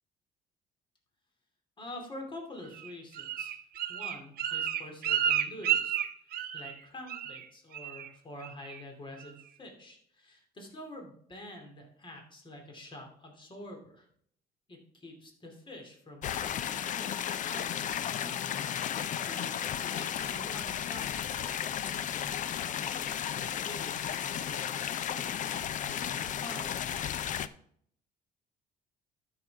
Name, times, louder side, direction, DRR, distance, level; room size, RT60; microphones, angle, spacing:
voice 1, 1.8-3.6 3.9-6.0 6.3-14.1 14.7-17.1 17.4-18.4 18.8-27.1, left 1 dB, 30° left, 2 dB, 2.6 m, -47 dB
Bird, 2.7-6.8 7.1-7.5 7.7-8.1 8.4-8.8 9.2-9.3, right 10 dB, 65° right, 0.8 m, -31 dB
sound 1, 16.2-27.5, left 9 dB, 50° left, 0.5 m, -34 dB
13.0 x 6.0 x 3.5 m, 0.65 s
cardioid pair, 110°, 17 cm